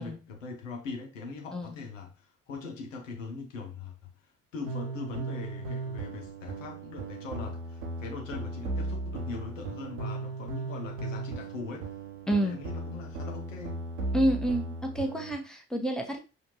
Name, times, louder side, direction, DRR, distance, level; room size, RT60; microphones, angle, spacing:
voice 1, 0.0-4.1 4.5-11.9 12.4-13.9, left 4 dB, 85° left, 0.7 m, -41 dB
sound 1, 4.7-15.3, right 2 dB, 85° right, 0.8 m, -36 dB
voice 2, 12.3-12.6 14.1-16.2, right 1 dB, ahead, 1.0 m, -29 dB
5.6 x 2.6 x 2.8 m
figure-of-eight pair, 45°, 38 cm